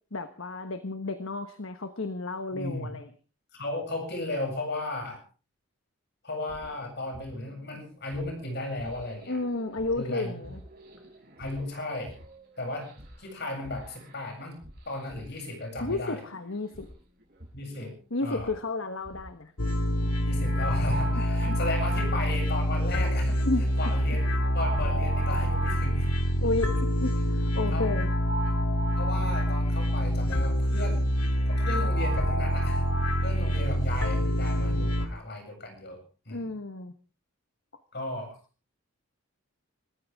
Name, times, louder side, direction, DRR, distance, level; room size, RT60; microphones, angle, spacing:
voice 1, 0.1-3.1 9.3-10.6 15.8-16.9 18.1-19.5 23.5-23.6 26.4-28.1 36.3-36.9, left 2 dB, 65° left, 9 dB, 1.3 m, -32 dB
voice 2, 2.5-2.9 3.6-5.2 6.2-9.4 10.0-10.4 11.4-12.1 12.6-12.9 13.2-14.6 14.9-16.2 17.5-17.9 18.2-18.5 20.2-23.4 23.8-24.3 24.5-26.1 27.7-27.9 29.0-31.0 31.5-32.9 33.2-36.0 36.3-36.5 37.9-38.4, left 2 dB, 50° left, 3 dB, 7.8 m, -35 dB
sound 1, 6.5-26.1, right 1 dB, 45° right, 7.1 m, -50 dB
sound 2, 19.6-35.1, equal, 85° left, 2.0 m, -26 dB
27.0 x 14.5 x 3.7 m, 0.38 s
head